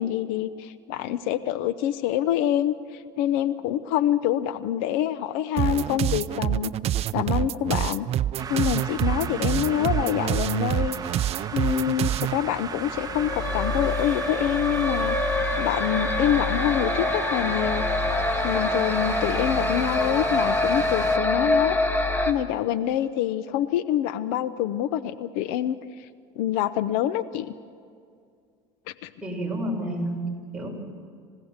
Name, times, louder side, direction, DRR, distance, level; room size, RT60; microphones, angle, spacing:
voice 1, 0.0-6.7 7.1-8.1 8.5-11.0 11.5-17.8 18.4-21.8 22.3-25.8 26.4-27.5 28.9-29.1, left 11 dB, 75° left, 14 dB, 0.8 m, -26 dB
sound 1, 5.6-12.4, right 12 dB, 45° right, 0.5 m, -26 dB
sound 2, 8.4-21.2, right 6 dB, 25° right, 1.2 m, -36 dB
sound 3, 12.8-22.3, left 2 dB, 15° left, 1.6 m, -25 dB
voice 2, 29.2-30.7, right 1 dB, 5° right, -2 dB, 5.7 m, -30 dB
27.0 x 17.0 x 7.4 m, 2.3 s
supercardioid pair, 115°, 15 cm